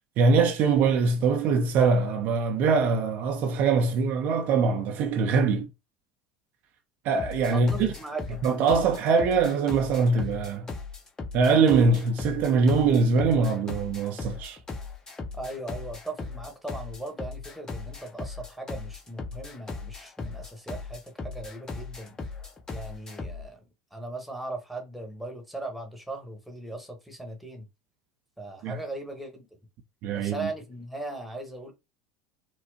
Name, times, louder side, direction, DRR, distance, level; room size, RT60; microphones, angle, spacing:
voice 1, 0.2-5.7 7.0-7.9 8.4-10.7 11.3-14.6 28.6-28.8 30.0-30.5, right 4 dB, 50° right, 0.5 m, -23 dB
sound 1, 7.2-23.5, left 4 dB, 15° left, 0.9 m, -38 dB
voice 2, 7.5-8.4 15.4-22.2 22.7-23.6 23.9-27.7 28.4-29.5 30.1-31.7, right 2 dB, ahead, 1.1 m, -38 dB
4.4 x 2.0 x 2.8 m
figure-of-eight pair, 70°, 4 cm